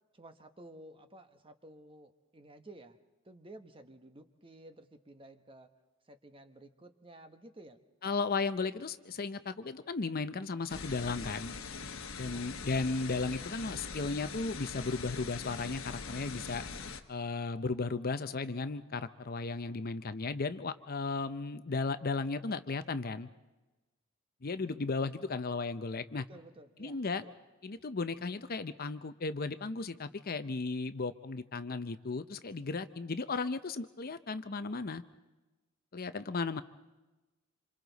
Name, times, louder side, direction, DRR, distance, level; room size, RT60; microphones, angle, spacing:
voice 1, 0.1-3.0 3.2-5.7 6.0-8.3 12.3-12.5 26.3-27.4, right 1 dB, 25° right, 8 dB, 1.1 m, -54 dB
voice 2, 8.0-11.5 12.2-16.7 17.1-23.3 24.4-26.2 26.8-27.2 27.6-35.0 35.9-36.6, left 3 dB, 45° left, 11 dB, 0.7 m, -35 dB
sound 1, 10.7-17.0, left 5 dB, 65° left, 1.2 m, -42 dB
27.0 x 27.0 x 4.1 m, 1.1 s
head